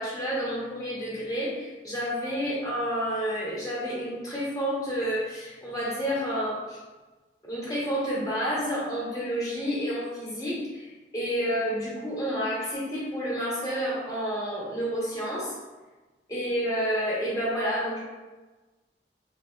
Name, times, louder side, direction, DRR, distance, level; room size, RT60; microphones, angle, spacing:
voice 1, 0.0-6.8 7.4-15.6 16.3-18.0, equal, 20° left, -7 dB, 0.9 m, -30 dB
3.4 x 2.7 x 2.2 m, 1.2 s
head